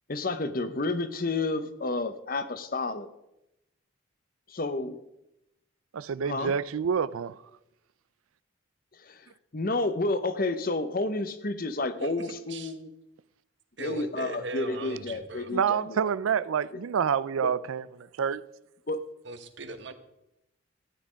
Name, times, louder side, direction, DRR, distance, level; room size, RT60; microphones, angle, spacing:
voice 1, 0.1-3.1 4.5-5.0 6.2-6.5 9.0-9.3 9.5-12.9 13.8-16.0 18.9-19.1, left 2 dB, 45° left, 0.8 m, -30 dB
voice 2, 5.9-7.4 15.5-18.4, right 7 dB, 90° right, 0.4 m, -28 dB
voice 3, 12.0-12.7 13.8-15.5 19.2-19.9, right 2 dB, 60° right, 1.2 m, -39 dB
13.5 x 9.8 x 5.1 m
head